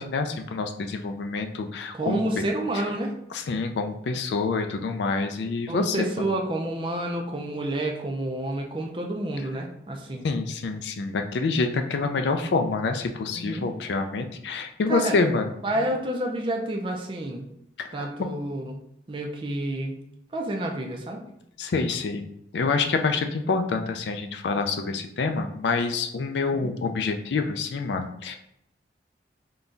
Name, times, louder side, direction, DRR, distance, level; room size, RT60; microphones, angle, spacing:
voice 1, 0.0-2.4 3.3-6.3 10.2-15.5 17.8-18.1 21.6-22.2 22.5-28.4, left 4 dB, 75° left, 6 dB, 0.4 m, -27 dB
voice 2, 1.9-3.1 5.7-10.3 13.3-13.7 14.9-15.2 15.6-17.5 17.9-18.8 19.1-20.0 20.3-21.2 26.5-26.7, right 1 dB, 30° right, 1 dB, 0.5 m, -29 dB
3.8 x 2.3 x 3.8 m, 0.78 s
head